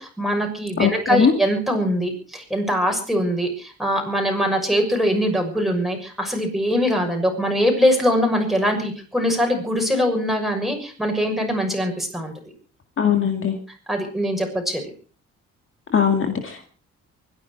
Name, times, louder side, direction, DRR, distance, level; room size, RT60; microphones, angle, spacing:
voice 1, 0.0-12.3 13.9-14.8, equal, ahead, 2 dB, 6.4 m, -22 dB
voice 2, 0.8-1.3 13.0-13.5 15.9-16.7, left 7 dB, 45° left, 5 dB, 2.1 m, -20 dB
24.5 x 10.5 x 4.7 m, 0.40 s
cardioid pair, 90°, 30 cm